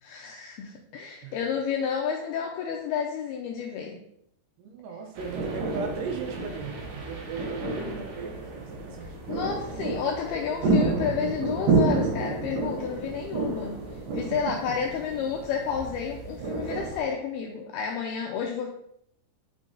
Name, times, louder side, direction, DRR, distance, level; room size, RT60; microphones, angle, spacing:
voice 1, 0.0-4.0 9.0-13.7 14.1-18.7, left 7 dB, 85° left, 1 dB, 2.3 m, -31 dB
voice 2, 4.6-9.2 9.7-9.8 14.3-14.8, right 5 dB, 80° right, 4 dB, 2.7 m, -37 dB
sound 1, 5.2-17.0, right 3 dB, 60° right, 2.0 m, -30 dB
8.9 x 4.0 x 3.8 m, 0.72 s
omnidirectional pair, 5.2 m